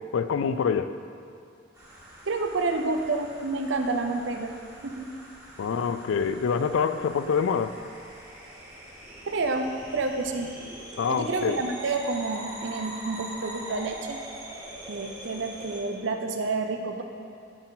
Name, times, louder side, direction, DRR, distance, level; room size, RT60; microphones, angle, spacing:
voice 1, 0.1-0.9 5.6-7.8 11.0-11.6, left 6 dB, 75° left, 11 dB, 0.4 m, -26 dB
sound 1, 1.7-15.8, right 1 dB, 20° right, 1.8 m, -43 dB
voice 2, 2.2-4.5 4.8-5.1 9.3-10.5 11.1-14.2 14.9-17.0, right 3 dB, 65° right, 5 dB, 0.6 m, -29 dB
11.5 x 4.3 x 4.0 m, 2.4 s
head